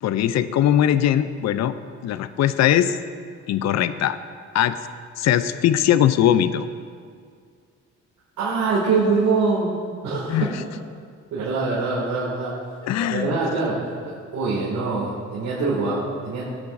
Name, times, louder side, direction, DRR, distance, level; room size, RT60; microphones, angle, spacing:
voice 1, 0.0-1.7 2.0-3.0 3.5-4.2 4.5-4.8 5.2-6.7 10.3-10.5 12.9-13.4, left 11 dB, 60° left, 12 dB, 0.5 m, -20 dB
voice 2, 8.4-9.8 10.0-10.5 11.3-12.5 13.1-16.4, right 4 dB, 75° right, -7 dB, 2.4 m, -24 dB
17.0 x 8.4 x 2.6 m, 2.1 s
cardioid pair, 90°, 30 cm